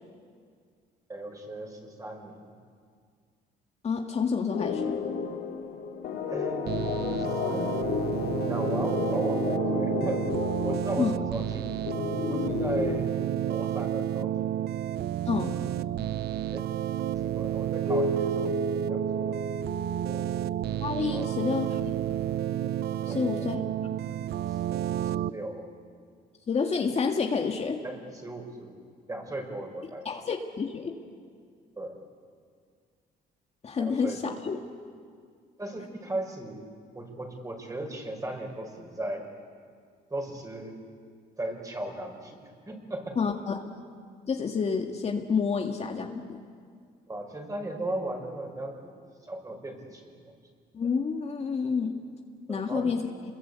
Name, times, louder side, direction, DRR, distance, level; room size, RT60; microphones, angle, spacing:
voice 1, 1.1-2.5 6.3-6.7 7.2-8.1 8.5-10.3 10.6-11.7 12.3-13.1 13.5-14.5 16.5-16.7 17.2-18.5 18.9-19.4 20.1-20.3 21.1-21.3 23.1-23.5 24.5-24.6 25.0-25.6 27.8-28.8 29.1-30.1 31.8-32.0 33.8-34.4 35.6-36.6 36.9-39.3 40.1-40.8 41.4-43.2 47.1-48.9 49.2-50.3 52.5-52.9, right 1 dB, 20° right, 3 dB, 5.5 m, -37 dB
voice 2, 3.8-5.0 11.0-11.2 15.3-15.5 20.8-22.0 23.1-23.6 26.5-27.8 30.1-30.9 33.6-34.6 43.2-43.6 44.3-46.4 50.7-52.0 52.5-53.0, left 5 dB, 35° left, 3 dB, 1.9 m, -29 dB
sound 1, 4.5-13.0, left 6 dB, 75° left, 2.7 m, -32 dB
sound 2, 6.7-25.3, right 11 dB, 65° right, 0.6 m, -31 dB
Keyboard (musical), 17.9-20.8, right 1 dB, 40° right, 7.4 m, -32 dB
27.5 x 22.0 x 8.3 m, 2.1 s
cardioid pair, 100°, 18 cm